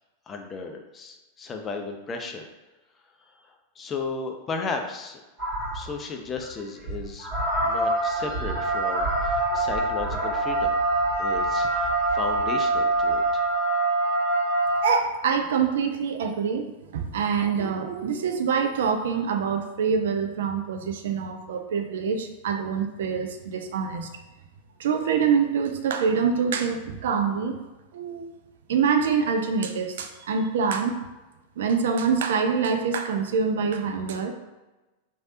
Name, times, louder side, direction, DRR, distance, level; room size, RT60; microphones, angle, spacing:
voice 1, 0.3-2.5 3.8-5.2 5.7-7.3 7.6-10.7 11.2-13.4, left 4 dB, 25° left, 3 dB, 0.4 m, -34 dB
sound 1, 5.4-6.0 6.3-6.5 6.8-14.8, right 2 dB, 35° right, 1.4 m, -25 dB
voice 2, 14.8-16.6 16.9-24.1 24.8-27.6 27.9-28.3 28.7-30.9 31.6-34.3, right 6 dB, 60° right, 5 dB, 0.3 m, -25 dB
3.2 x 2.6 x 2.8 m, 1.1 s
figure-of-eight pair, 90°, 0 cm